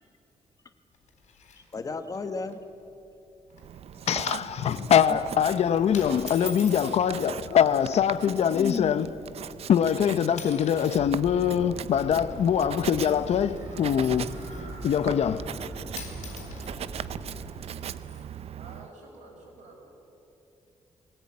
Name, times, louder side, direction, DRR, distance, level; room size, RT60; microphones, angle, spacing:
sound 1, 0.9-2.2 2.5-2.6 2.9-3.1 3.5-3.8 4.2-4.4 5.2-5.4 5.9-7.0 8.0-8.3 8.9-9.0 9.7-10.0 10.3-11.0 11.3-14.8 15.6-15.7 15.9-18.2, left 4 dB, 90° left, 4.0 m, -46 dB
voice 1, 1.6-2.6 4.7-5.2 7.0-7.9 8.2-9.1, left 4 dB, 30° left, 1.1 m, -36 dB
Writing, 3.5-18.9, right 9 dB, 60° right, 0.5 m, -39 dB
voice 2, 4.1-9.1 9.7-14.3 14.8-15.4, left 8 dB, 65° left, 0.8 m, -23 dB
sound 2, 10.9-17.5, right 1 dB, 20° right, 5.2 m, -41 dB
voice 3, 18.5-19.9, right 3 dB, 85° right, 6.2 m, -49 dB
21.5 x 17.5 x 8.7 m
wide cardioid pair, 145°, 12 cm